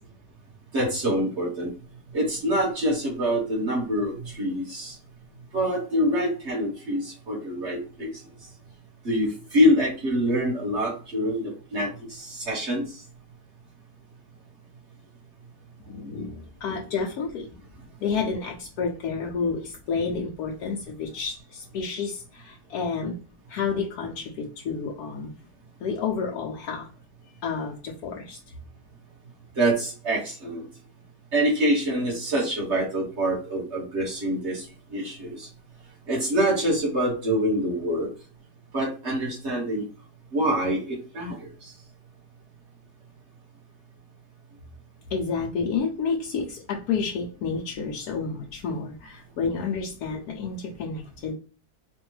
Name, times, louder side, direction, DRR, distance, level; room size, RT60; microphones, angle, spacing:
voice 1, 0.7-1.7 2.1-5.0 5.5-8.1 9.0-12.8 29.6-30.7 31.3-34.6 34.9-35.5 36.1-38.1 38.7-39.8 40.3-41.7, equal, 45° right, -3 dB, 2.0 m, -25 dB
voice 2, 15.9-17.5 18.0-23.2 23.5-25.3 25.8-26.9 27.4-28.4 45.1-51.3, left 5 dB, 75° left, -1 dB, 1.1 m, -30 dB
4.2 x 2.5 x 3.1 m, 0.36 s
omnidirectional pair, 1.7 m